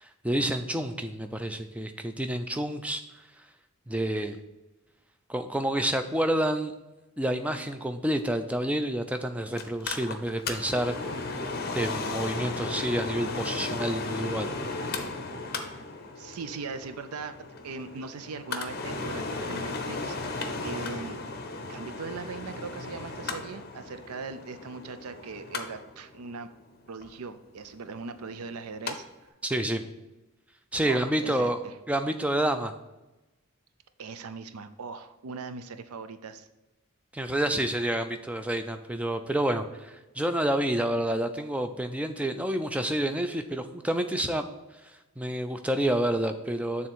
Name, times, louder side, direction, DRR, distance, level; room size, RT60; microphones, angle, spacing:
voice 1, 0.0-3.0 3.9-4.4 5.3-6.7 7.2-11.4 11.7-14.5 29.4-29.8 30.7-31.6 31.9-32.7 37.1-44.4 45.2-46.9, right 1 dB, 5° right, 7 dB, 0.3 m, -29 dB
Mechanical fan, 9.6-28.9 29.3-29.4, left 3 dB, 45° left, 0.6 m, -36 dB
voice 2, 16.2-21.2 21.7-26.5 26.9-29.1 30.8-31.8 34.0-36.5, right 4 dB, 90° right, 10 dB, 0.5 m, -40 dB
6.8 x 3.6 x 6.0 m, 1.0 s
head